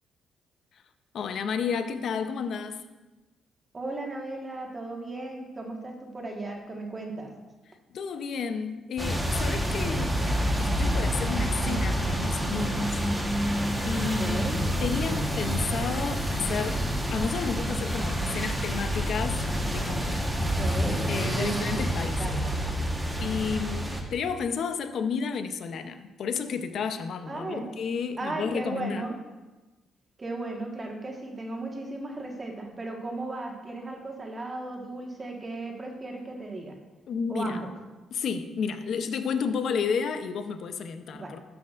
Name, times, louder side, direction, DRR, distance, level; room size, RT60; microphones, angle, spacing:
voice 1, 1.1-2.8 7.9-10.2 10.6-13.0 13.8-14.4 14.8-16.8 17.1-20.3 21.1-22.4 23.2-29.1 37.1-37.6 38.1-41.4, left 6 dB, 65° left, 9 dB, 0.6 m, -31 dB
voice 2, 3.7-7.3 11.6-11.7 14.0-14.6 20.3-21.0 21.3-22.6 27.3-27.7 28.2-29.2 30.2-36.8 37.3-37.7 41.1-41.4, right 2 dB, 30° right, 1 dB, 1.4 m, -36 dB
sound 1, 9.0-24.0, equal, 10° right, 1.2 m, -28 dB
12.5 x 5.9 x 2.5 m, 1.2 s
cardioid pair, 90°, 0 cm